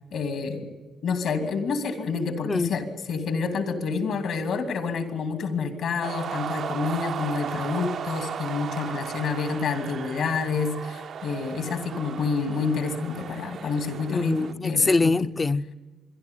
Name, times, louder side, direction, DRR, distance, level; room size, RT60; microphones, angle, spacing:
voice 1, 0.1-0.7 1.0-15.1, left 5 dB, 70° left, 2.8 m, -28 dB
voice 2, 2.4-2.8 14.1-15.7, left 3 dB, 25° left, 0.6 m, -24 dB
sound 1, 6.0-14.5, right 7 dB, 60° right, 0.6 m, -36 dB
26.0 x 12.0 x 9.6 m
cardioid pair, 90°, 0 cm